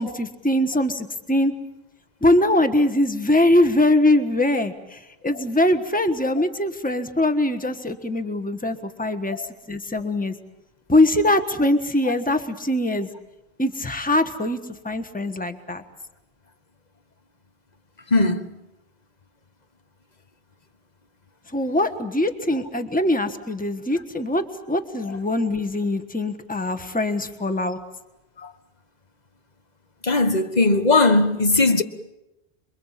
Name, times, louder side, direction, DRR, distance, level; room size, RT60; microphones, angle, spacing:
voice 1, 0.0-1.5 2.2-4.7 5.2-9.4 9.7-10.3 10.9-13.1 13.6-14.6 14.8-15.8 21.5-27.8, left 1 dB, 10° left, 1.3 m, -22 dB
voice 2, 18.1-18.5 28.4-28.5 30.0-31.8, left 2 dB, 40° left, 1.4 m, -19 dB
27.0 x 22.5 x 7.5 m
omnidirectional pair, 1.1 m